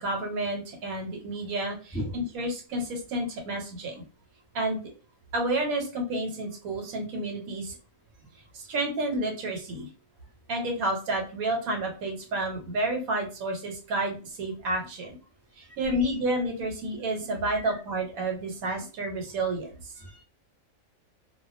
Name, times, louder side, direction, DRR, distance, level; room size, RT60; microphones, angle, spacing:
voice 1, 0.0-4.0 4.5-4.8 5.3-7.8 8.5-9.9 10.5-15.1 15.6-19.7, right 1 dB, 80° right, 2 dB, 1.1 m, -30 dB
voice 2, 15.6-16.1 17.5-17.8 20.0-20.2, equal, ahead, -5 dB, 0.9 m, -37 dB
2.3 x 2.2 x 2.4 m, 0.35 s
omnidirectional pair, 1.5 m